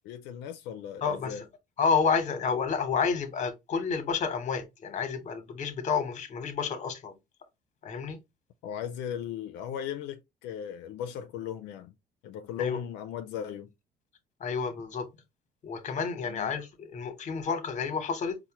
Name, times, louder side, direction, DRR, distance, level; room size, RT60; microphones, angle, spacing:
voice 1, 0.1-1.4 8.6-11.9 12.2-13.7 16.2-16.5, left 9 dB, 90° left, 0.4 m, -37 dB
voice 2, 1.0-1.4 1.8-7.2 7.8-8.2 12.6-12.8 14.4-15.1 15.6-18.4, left 5 dB, 45° left, 0.9 m, -30 dB
4.2 x 2.1 x 2.9 m
cardioid pair, 110°, 17 cm